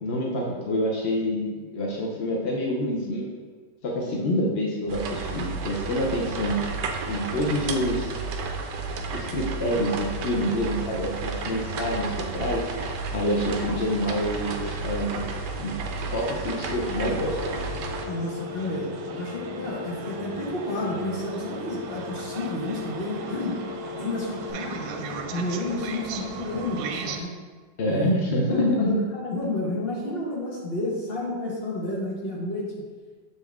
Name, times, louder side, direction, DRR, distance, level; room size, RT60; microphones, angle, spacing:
voice 1, 0.0-3.3 3.8-6.6 7.1-8.2 9.1-12.7 13.1-15.2 15.6-15.8 16.1-17.4 27.8-29.0, equal, 60° left, -2 dB, 0.6 m, -27 dB
sound 1, 4.9-18.1, right 4 dB, 75° right, 1.2 m, -32 dB
Telephone, 16.5-24.5, left 9 dB, 80° left, 1.6 m, -38 dB
sound 2, 17.3-27.2, right 6 dB, 90° right, 1.3 m, -37 dB
voice 2, 18.1-23.6 23.9-27.3 27.9-28.1 28.5-32.7, left 2 dB, 35° left, -4 dB, 1.3 m, -31 dB
7.3 x 4.1 x 3.5 m, 1.4 s
omnidirectional pair, 2.0 m